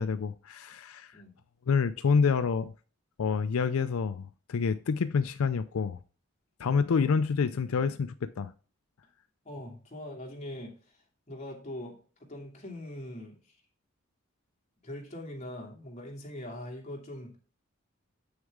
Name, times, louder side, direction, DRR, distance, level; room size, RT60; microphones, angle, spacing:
voice 1, 0.0-1.1 1.7-2.7 3.2-6.0 6.6-8.5, left 5 dB, 90° left, 0.4 m, -28 dB
voice 2, 9.4-10.7 11.3-13.4 14.8-17.4, left 1 dB, 35° left, 2.4 m, -42 dB
8.2 x 6.3 x 3.6 m
head